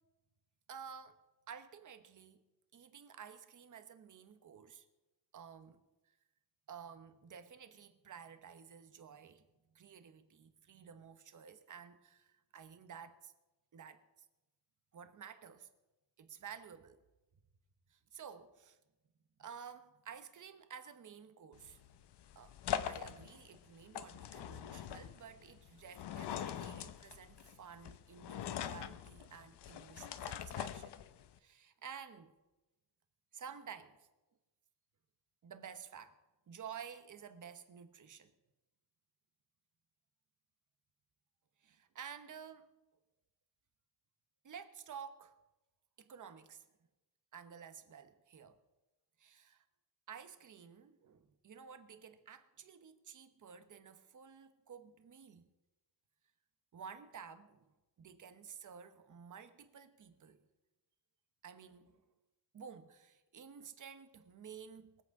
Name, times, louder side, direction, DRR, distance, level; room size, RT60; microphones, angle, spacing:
voice 1, 0.7-1.2 1.5-2.4 2.7-4.8 5.3-5.8 6.7-9.4 9.7-13.3 13.7-14.1 14.9-15.7 16.2-17.0 17.9-18.8 19.4-21.8 22.3-22.6 22.8-30.9 31.4-32.3 33.3-34.1 35.4-36.2 36.5-38.3 41.6-42.7 44.4-45.3 46.0-46.6 47.3-48.6 49.2-49.6 50.1-55.5 56.7-57.6 58.0-60.4 61.4-62.0 62.5-65.0, right 7 dB, 45° right, 1.1 m, -52 dB
sound 1, 21.5-31.4, left 10 dB, 65° left, 0.8 m, -43 dB
22.0 x 8.5 x 4.8 m
cardioid pair, 130°, 43 cm